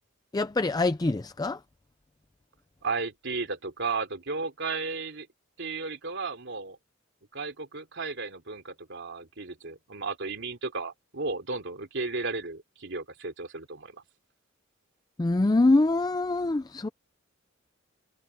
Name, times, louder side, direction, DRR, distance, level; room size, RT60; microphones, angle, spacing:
voice 1, 0.3-1.6 15.2-16.9, left 2 dB, 20° left, 0.4 m, -24 dB
voice 2, 2.8-5.3 5.6-6.8 7.3-14.0, right 4 dB, 60° right, 3.0 m, -34 dB
head